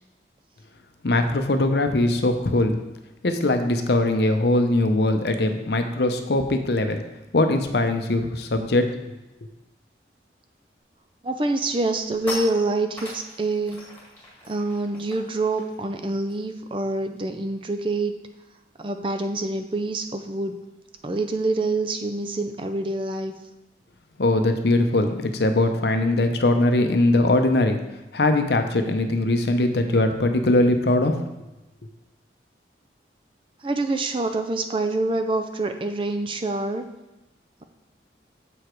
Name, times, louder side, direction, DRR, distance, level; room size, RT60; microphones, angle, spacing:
voice 1, 1.0-2.8 3.2-7.0 7.3-8.9 24.2-27.8 28.1-31.2, left 2 dB, 65° left, 6 dB, 0.7 m, -21 dB
sound 1, 10.9-11.1 11.5-17.4 17.7-18.0 18.2-23.2, left 1 dB, 10° left, 1.7 m, -42 dB
voice 2, 11.2-13.8 14.5-18.1 18.8-20.5 21.0-23.3 33.6-36.9, right 2 dB, 30° right, 6 dB, 0.4 m, -26 dB
7.0 x 4.9 x 4.5 m, 1.0 s
head